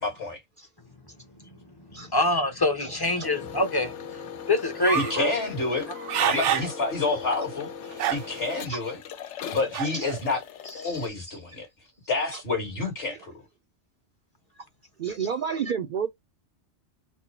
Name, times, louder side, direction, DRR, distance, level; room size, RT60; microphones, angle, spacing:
voice 1, 0.0-0.4 4.9-5.9 6.3-9.0 9.5-10.4 10.7-11.7 12.1-13.3, left 3 dB, 60° left, 2.1 m, -29 dB
voice 2, 2.1-3.9 4.5-5.3 6.2-6.4, left 2 dB, 25° left, 0.8 m, -25 dB
sound 1, 3.2-11.1, left 7 dB, 75° left, 0.9 m, -40 dB
sound 2, 4.8-5.2 5.8-6.7 7.2-7.3 7.9-8.5 9.7-10.2, right 11 dB, 80° right, 0.9 m, -27 dB
voice 3, 10.6-11.6 12.3-12.4 12.8-12.9 15.0-16.1, right 6 dB, 60° right, 0.6 m, -32 dB
4.4 x 2.0 x 4.2 m
omnidirectional pair, 1.2 m